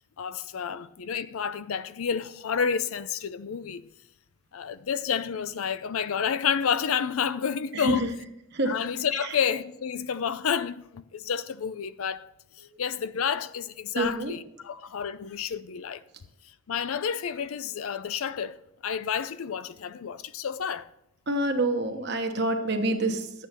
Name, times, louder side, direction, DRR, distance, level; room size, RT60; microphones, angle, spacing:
voice 1, 0.2-3.9 4.5-8.0 8.7-12.3 12.6-16.0 16.7-18.6 18.8-20.9, left 7 dB, 85° left, 0.5 m, -30 dB
voice 2, 7.7-8.1 8.5-8.7 9.2-9.4 12.6-12.8 13.9-14.4 21.3-23.5, right 1 dB, 50° right, 1.2 m, -27 dB
11.5 x 8.4 x 4.3 m
head